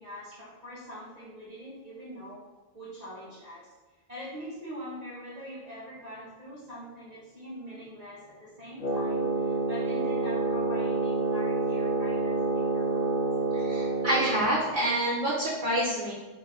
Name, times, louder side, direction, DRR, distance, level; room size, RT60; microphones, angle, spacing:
voice 1, 0.0-2.4 2.7-3.7 4.1-13.1, equal, 40° right, -9 dB, 0.8 m, -43 dB
Wind instrument woodwind instrument, 8.8-14.5, right 3 dB, 55° left, 0.5 m, -28 dB
voice 2, 13.5-16.1, right 1 dB, 85° right, -8 dB, 1.4 m, -27 dB
3.3 x 2.6 x 3.3 m, 1.2 s
omnidirectional pair, 1.2 m